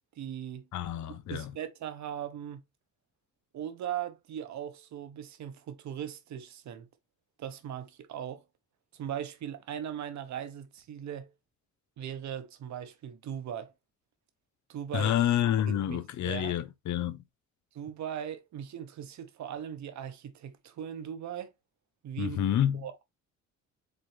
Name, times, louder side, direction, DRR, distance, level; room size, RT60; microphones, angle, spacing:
voice 1, 0.2-0.7 1.3-2.6 3.5-6.9 7.4-8.4 8.9-11.3 12.0-13.7 14.7-15.1 15.7-16.0 16.2-16.5 17.7-21.5 22.0-22.4 22.7-23.0, right 9 dB, 65° right, 1.0 m, -39 dB
voice 2, 0.7-1.5 14.9-17.2 22.2-22.8, left 10 dB, 70° left, 0.8 m, -28 dB
4.1 x 3.9 x 3.2 m
cardioid pair, 90°, 30 cm